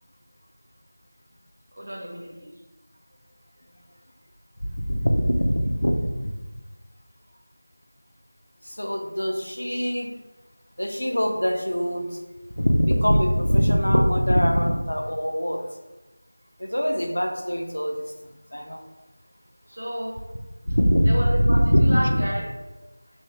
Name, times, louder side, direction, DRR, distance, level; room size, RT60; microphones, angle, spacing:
voice 1, 1.8-2.5 19.7-20.1 21.0-22.4, equal, 35° right, -7 dB, 0.7 m, -31 dB
voice 2, 4.8-6.3 8.7-10.1 10.8-12.2 12.6-15.6 16.6-18.0 18.5-18.8 20.7-22.2, equal, 85° left, 4 dB, 0.5 m, -22 dB
3.1 x 2.7 x 3.3 m, 1.1 s
figure-of-eight pair, 175°, 0 cm